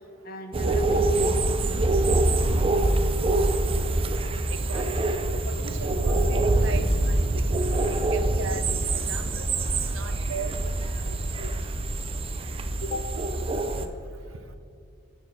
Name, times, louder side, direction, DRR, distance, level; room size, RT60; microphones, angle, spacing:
voice 1, 0.2-2.1 12.8-13.1, left 1 dB, 50° left, 6 dB, 0.9 m, -36 dB
sound 1, 0.5-13.9, right 2 dB, 30° right, 0.5 m, -25 dB
voice 2, 4.5-5.1 5.4-9.5 9.7-10.7 11.0-11.5, right 4 dB, 80° right, 10 dB, 0.6 m, -38 dB
11.5 x 4.6 x 6.0 m, 2.5 s
head